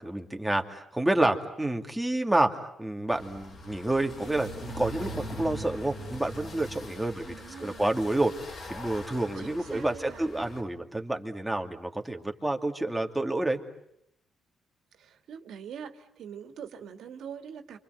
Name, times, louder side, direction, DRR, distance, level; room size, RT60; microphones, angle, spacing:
voice 1, 0.0-7.3 7.6-13.6, right 1 dB, 5° right, 3 dB, 2.7 m, -29 dB
sound 1, 3.1-10.6, equal, 50° left, 4.7 m, -42 dB
voice 2, 7.3-7.9 9.4-10.2 15.0-17.8, right 7 dB, 75° right, 7 dB, 2.2 m, -43 dB
28.5 x 25.5 x 8.0 m, 0.78 s
cardioid pair, 90°, 0 cm